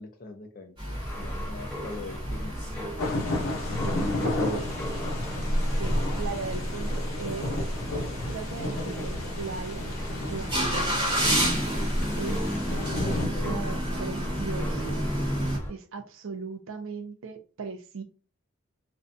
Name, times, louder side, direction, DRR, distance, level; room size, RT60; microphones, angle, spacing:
voice 1, 0.0-2.6 13.0-13.8, left 3 dB, 40° left, 0.4 m, -42 dB
sound 1, 0.8-15.6, equal, 20° right, 1.0 m, -33 dB
sound 2, 0.9-15.7, equal, 15° left, 1.1 m, -33 dB
sound 3, 3.0-13.3, left 2 dB, 80° left, 0.7 m, -33 dB
voice 2, 4.4-4.8 5.8-7.5 8.3-9.9 10.3-11.3 12.2-12.5 13.2-15.1 15.7-18.0, right 5 dB, 70° right, 0.5 m, -38 dB
2.5 x 2.2 x 2.5 m
head